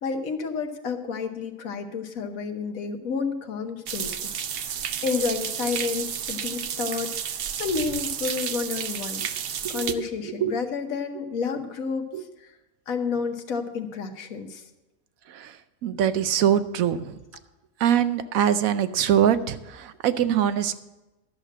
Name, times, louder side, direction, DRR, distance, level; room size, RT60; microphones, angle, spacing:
voice 1, 0.0-4.3 5.0-7.2 7.6-9.2 9.7-12.0 12.9-14.6, left 5 dB, 85° left, 5 dB, 1.5 m, -30 dB
sound 1, 3.9-9.9, right 8 dB, 55° right, 0.7 m, -31 dB
voice 2, 9.6-10.5 12.1-12.2 15.3-17.2 17.8-20.7, right 9 dB, 85° right, 12 dB, 1.1 m, -24 dB
12.0 x 6.6 x 7.5 m, 1.1 s
omnidirectional pair, 1.4 m